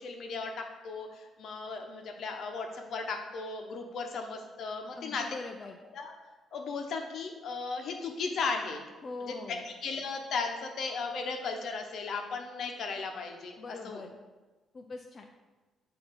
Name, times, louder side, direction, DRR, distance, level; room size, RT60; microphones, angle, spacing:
voice 1, 0.0-5.2 5.9-6.1 6.5-8.8 9.2-9.6 9.8-14.0, left 4 dB, 65° left, 3 dB, 0.9 m, -36 dB
voice 2, 5.0-5.8 9.0-9.7 13.6-14.2 14.7-15.3, left 3 dB, 40° left, 2 dB, 0.4 m, -42 dB
6.7 x 2.8 x 5.8 m, 1.2 s
cardioid pair, 90°, 0 cm